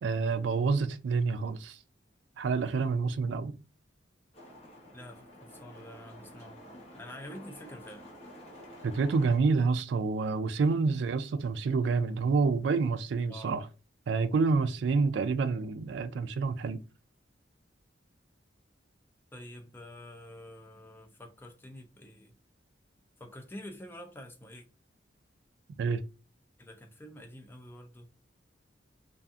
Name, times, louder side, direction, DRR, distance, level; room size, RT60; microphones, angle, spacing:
voice 1, 0.0-1.8 2.4-3.5 8.8-13.7 14.1-16.8 25.8-26.0, right 4 dB, 65° right, 0.3 m, -28 dB
sound 1, 4.3-9.4, equal, 35° left, 0.9 m, -50 dB
voice 2, 4.9-6.6 6.9-8.1 10.6-10.8 13.3-13.6 19.3-22.3 23.2-24.6 26.6-28.1, left 1 dB, 10° left, 0.4 m, -47 dB
2.7 x 2.4 x 2.3 m
head